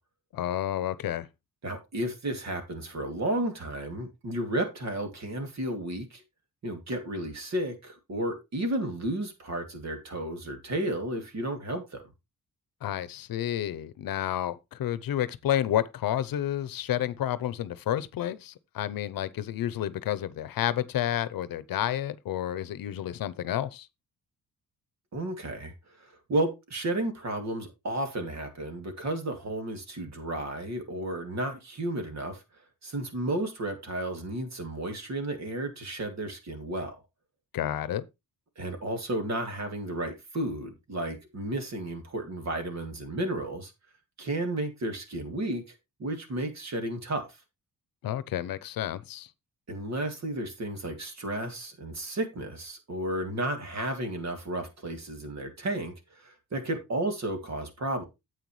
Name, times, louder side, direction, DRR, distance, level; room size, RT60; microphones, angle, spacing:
voice 1, 0.3-1.3 12.8-23.9 37.5-38.0 48.0-49.3, left 11 dB, 80° left, 0.8 m, -30 dB
voice 2, 1.6-6.2 6.6-12.0 25.1-25.7 26.0-32.4 32.8-37.0 38.6-43.7 44.2-45.6 46.0-47.3 49.7-58.0, right 1 dB, 50° right, 2.6 m, -32 dB
9.3 x 8.1 x 3.2 m
cardioid pair, 115°, 34 cm